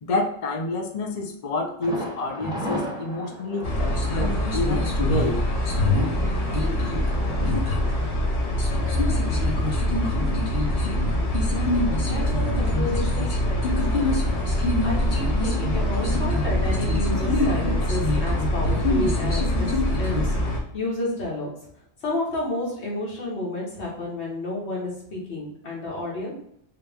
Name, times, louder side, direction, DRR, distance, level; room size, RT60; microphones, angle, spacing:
voice 1, 0.0-5.4, left 2 dB, 45° left, 3 dB, 0.5 m, -28 dB
Thunder, 1.8-9.6 9.9-10.0 10.4-10.5, right 1 dB, 5° right, 0.7 m, -36 dB
sound 1, 3.6-20.6, left 1 dB, 65° left, 1.1 m, -23 dB
voice 2, 12.1-14.3 14.8-21.6 22.0-26.3, left 2 dB, 80° left, -4 dB, 1.6 m, -31 dB
3.3 x 3.0 x 3.4 m, 0.71 s
omnidirectional pair, 1.1 m